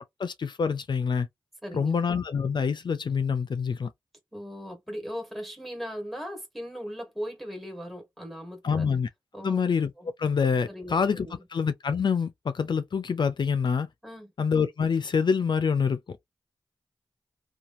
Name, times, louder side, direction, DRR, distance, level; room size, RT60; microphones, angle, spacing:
voice 1, 0.2-1.3 1.7-3.9 8.6-9.1 9.4-9.9 10.2-11.3 11.5-13.9 14.4-16.2, left 6 dB, 60° left, 0.4 m, -26 dB
voice 2, 1.6-2.0 4.3-8.9 9.3-9.6 10.0-10.1 10.7-11.4 14.0-14.3, equal, ahead, 1.4 m, -38 dB
2.9 x 2.3 x 2.5 m
cardioid pair, 45°, 9 cm